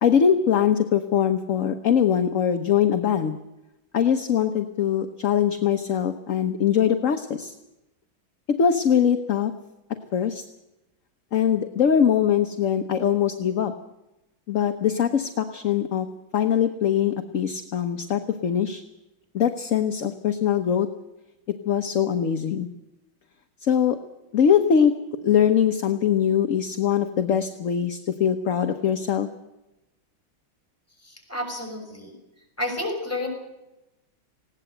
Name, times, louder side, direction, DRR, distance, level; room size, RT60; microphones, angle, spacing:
voice 1, 0.0-3.4 3.9-7.5 8.6-9.5 10.1-10.4 11.3-13.7 14.5-16.1 16.3-18.8 19.3-20.9 21.6-22.7 23.6-24.0 24.3-24.9 25.2-29.3, left 8 dB, 50° left, 7 dB, 1.1 m, -22 dB
voice 2, 31.0-32.1 32.6-33.3, left 1 dB, 5° left, 2 dB, 6.5 m, -30 dB
19.5 x 17.0 x 7.9 m, 0.96 s
omnidirectional pair, 2.2 m